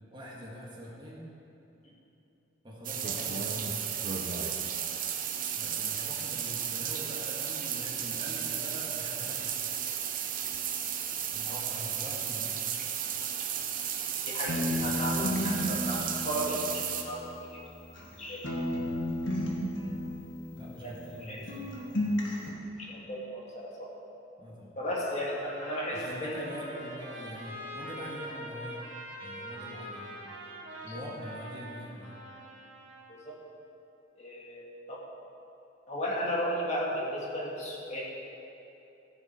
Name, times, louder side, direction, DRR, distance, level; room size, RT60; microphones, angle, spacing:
voice 1, 0.1-1.2 2.6-3.8 5.5-9.5 11.3-12.6 20.5-21.7 24.4-24.7 25.9-28.8 29.2-30.2 30.8-32.2, equal, 25° right, -4 dB, 1.8 m, -43 dB
sound 1, 2.8-17.0, right 8 dB, 45° right, 0.8 m, -34 dB
voice 2, 14.2-17.2 17.5-17.6 18.2-18.4 20.8-20.9 21.2-21.4 22.8-23.9 24.8-26.3 30.8-30.9 33.1-33.3 34.2-35.0 35.9-38.0, equal, 35° left, -4 dB, 1.8 m, -34 dB
sound 2, 14.5-18.1 18.4-21.2 21.5-22.5, left 1 dB, 80° left, 1.6 m, -33 dB
Trumpet, 25.0-33.1, equal, 75° right, 2.3 m, -44 dB
15.0 x 7.0 x 4.4 m, 2.9 s
head